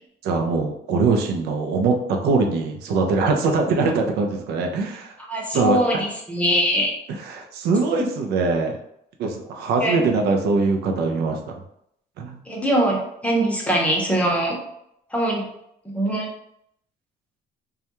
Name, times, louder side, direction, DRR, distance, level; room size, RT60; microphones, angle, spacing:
voice 1, 0.2-5.1 5.5-6.0 7.2-8.7 9.2-11.4 12.2-12.4, right 3 dB, 75° right, 3 dB, 0.4 m, -22 dB
voice 2, 5.3-6.9 9.8-10.0 12.5-14.6 15.1-15.5 15.9-16.3, right 1 dB, 5° left, -2 dB, 0.7 m, -22 dB
2.3 x 2.1 x 2.9 m, 0.74 s
cardioid pair, 110°, 17 cm